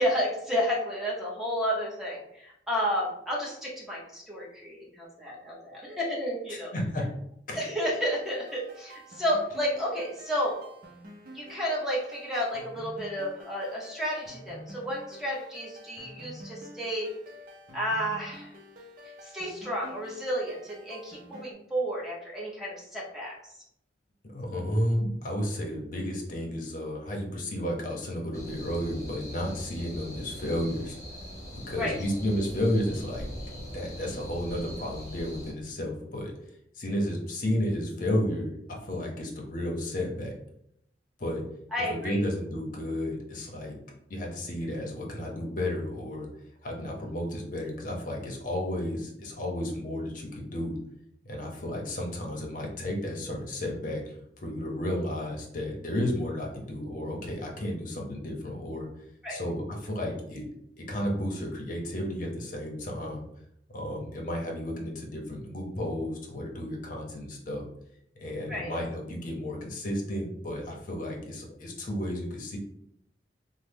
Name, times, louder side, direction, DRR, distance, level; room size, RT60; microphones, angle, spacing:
voice 1, 0.0-6.7 7.5-10.6 11.3-17.1 17.7-18.5 19.2-23.3 31.8-31.9 41.7-42.2 59.2-59.4 68.5-68.7, equal, ahead, -5 dB, 0.9 m, -31 dB
voice 2, 6.5-7.1 7.5-7.7 24.3-31.0 31.5-33.3 33.7-36.3 36.7-40.3 41.2-41.4 41.9-43.8 44.1-46.3 46.6-50.8 51.2-58.9 59.3-60.5 60.8-63.2 63.7-67.6 68.2-72.6, left 1 dB, 50° left, 0 dB, 0.7 m, -32 dB
sound 1, 8.2-21.5, equal, 50° right, 0.6 m, -48 dB
sound 2, 28.3-35.5, equal, 20° left, 1.2 m, -42 dB
3.1 x 2.1 x 3.4 m, 0.75 s
head